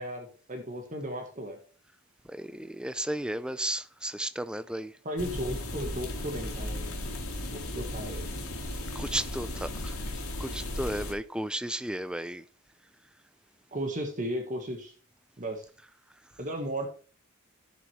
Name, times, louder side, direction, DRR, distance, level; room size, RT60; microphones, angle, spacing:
voice 1, 0.0-1.6 5.0-6.9 7.5-8.3 13.7-14.9 15.4-15.7 16.4-16.9, right 1 dB, 35° right, 1.4 m, -35 dB
voice 2, 2.3-4.9 8.9-10.0 10.4-12.4, right 1 dB, 5° right, 0.4 m, -34 dB
sound 1, 5.2-11.1, left 1 dB, 80° left, 2.7 m, -36 dB
15.5 x 6.4 x 3.2 m
head